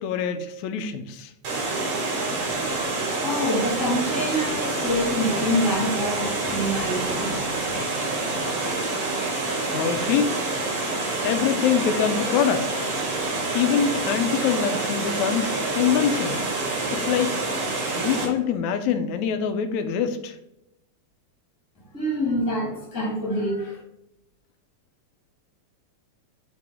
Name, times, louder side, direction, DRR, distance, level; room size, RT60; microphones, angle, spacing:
voice 1, 0.0-1.3 9.7-10.4 11.2-12.8 13.5-16.4 16.9-17.3 18.0-20.4, left 8 dB, 80° left, 8 dB, 2.0 m, -24 dB
Water, 1.4-18.3, right 3 dB, 85° right, 3.5 m, -27 dB
voice 2, 3.1-7.7 21.9-23.8, equal, 10° left, -2 dB, 1.4 m, -26 dB
8.2 x 3.8 x 3.6 m, 0.83 s
omnidirectional pair, 3.3 m